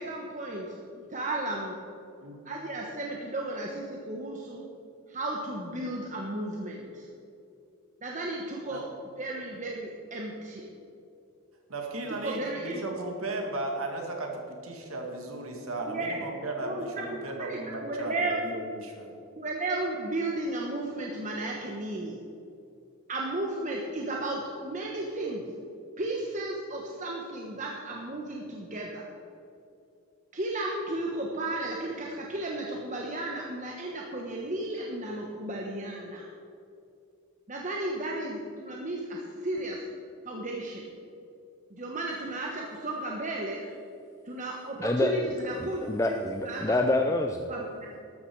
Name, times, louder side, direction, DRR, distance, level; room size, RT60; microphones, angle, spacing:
voice 1, 0.0-1.8 2.4-4.7 5.1-7.1 8.0-8.8 9.2-10.7 12.2-12.8 15.9-16.2 16.6-17.0 17.4-18.4 19.4-22.2 23.1-25.5 26.0-29.1 30.3-36.2 37.5-39.8 40.2-40.9 41.7-43.6 44.2-46.1 46.4-46.6 47.5-48.0, right 2 dB, 35° right, -1 dB, 1.3 m, -34 dB
voice 2, 11.7-19.2, right 2 dB, 70° right, 2 dB, 2.3 m, -36 dB
voice 3, 44.8-45.3 45.6-47.5, left 2 dB, 15° left, 3 dB, 0.5 m, -27 dB
13.5 x 12.5 x 4.8 m, 2.6 s
head